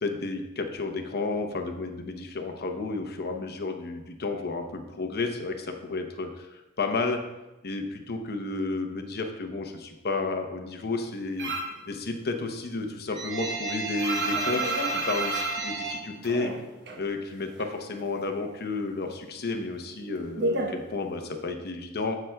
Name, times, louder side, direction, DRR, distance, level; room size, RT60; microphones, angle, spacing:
voice 1, 0.0-7.2 7.6-11.5 11.9-16.5 17.0-22.2, left 3 dB, 50° left, 5 dB, 0.8 m, -32 dB
sound 1, 11.4-11.8 12.2-17.1 17.3-18.4 18.7-21.5, right 2 dB, 55° right, 0.9 m, -31 dB
14.0 x 5.7 x 2.3 m, 1.0 s
head